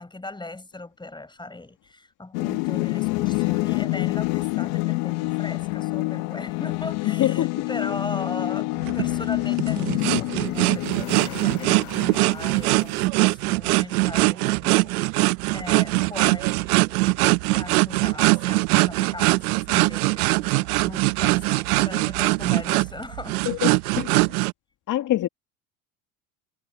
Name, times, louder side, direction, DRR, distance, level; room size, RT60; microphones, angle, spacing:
voice 1, 0.0-23.4, left 2 dB, 10° left, 5.4 m, -38 dB
sound 1, 2.3-13.0, left 26 dB, 70° left, 0.9 m, -27 dB
voice 2, 7.0-7.5 23.5-23.7 24.0-24.4 24.9-25.3, left 13 dB, 45° left, 1.9 m, -25 dB
sound 2, 8.8-24.5, right 23 dB, 85° right, 0.7 m, -22 dB
supercardioid pair, 95°, 43 cm